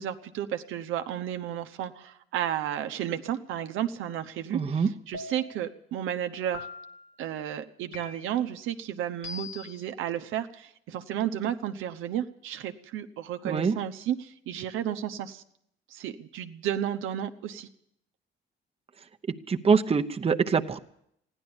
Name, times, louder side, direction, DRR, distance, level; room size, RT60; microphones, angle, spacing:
voice 1, 0.0-6.7 7.2-15.4 15.9-17.7, right 10 dB, 90° right, 8 dB, 0.9 m, -33 dB
voice 2, 4.5-4.9 13.4-13.8 19.5-20.8, right 5 dB, 30° right, 6 dB, 0.8 m, -24 dB
sound 1, 5.1-5.7 6.5-7.1 7.9-8.5 9.2-9.8, left 4 dB, 70° left, 1.8 m, -42 dB
15.0 x 11.0 x 8.8 m, 0.74 s
cardioid pair, 90°, 20 cm